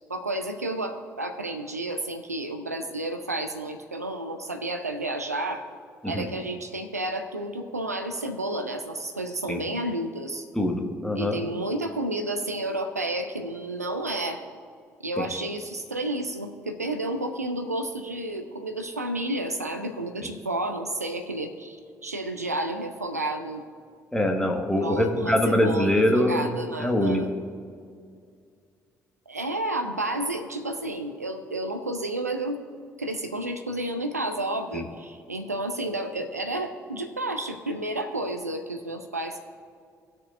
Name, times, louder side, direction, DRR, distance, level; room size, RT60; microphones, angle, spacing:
voice 1, 0.1-5.6 6.0-10.5 11.2-14.4 15.0-23.6 24.8-27.3 29.3-32.6 33.0-39.4, right 1 dB, 85° right, 7 dB, 0.5 m, -31 dB
voice 2, 10.5-11.4 15.2-15.3 24.1-26.5 26.8-27.2 34.7-34.8, left 1 dB, 5° left, 2 dB, 1.6 m, -23 dB
19.0 x 6.4 x 2.5 m, 2.2 s
figure-of-eight pair, 45°, 8 cm